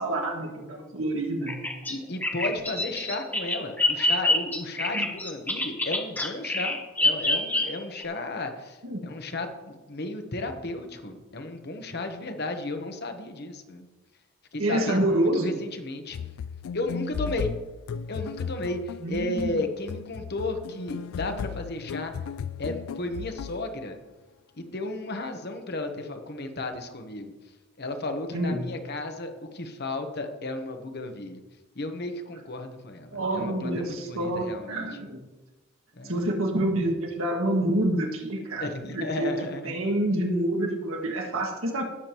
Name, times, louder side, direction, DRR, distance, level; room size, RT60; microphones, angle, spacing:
voice 1, 0.0-1.6 4.9-5.1 8.8-9.1 14.6-15.5 19.0-19.6 28.3-28.7 33.1-35.2 36.0-39.3 39.6-41.8, right 1 dB, 80° right, 1 dB, 1.9 m, -27 dB
Bird vocalization bird call bird song, 1.5-8.0, left 2 dB, 10° left, 0.9 m, -26 dB
voice 2, 1.9-8.8 9.0-13.9 14.5-16.2 16.7-17.5 18.1-22.1 22.6-24.0 24.6-27.3 27.8-31.4 31.7-34.9 36.0-36.1 38.6-39.7, left 2 dB, 50° left, 6 dB, 1.1 m, -34 dB
sound 1, 16.1-23.7, left 7 dB, 75° left, 0.3 m, -36 dB
18.0 x 7.1 x 3.0 m, 1.2 s
head